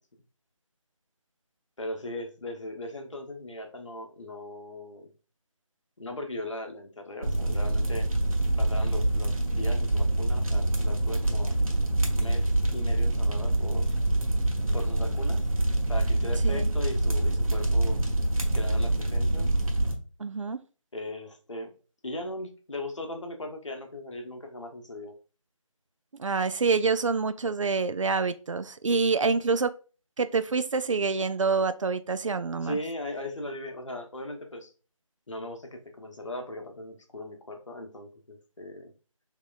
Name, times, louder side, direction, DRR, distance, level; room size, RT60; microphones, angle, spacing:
voice 1, 1.8-5.1 6.0-8.1 8.6-11.6 12.1-13.9 14.7-15.4 15.9-18.0 18.5-19.5 20.9-21.7 22.0-25.2 29.2-29.3 32.6-34.7 35.3-38.9, left 1 dB, 60° left, 1.0 m, -38 dB
sound 1, 7.2-19.9, right 1 dB, 80° right, 1.0 m, -25 dB
voice 2, 20.2-20.6 26.2-29.7 30.2-32.8, right 4 dB, 65° right, 0.4 m, -26 dB
4.6 x 2.9 x 2.4 m
figure-of-eight pair, 165°, 18 cm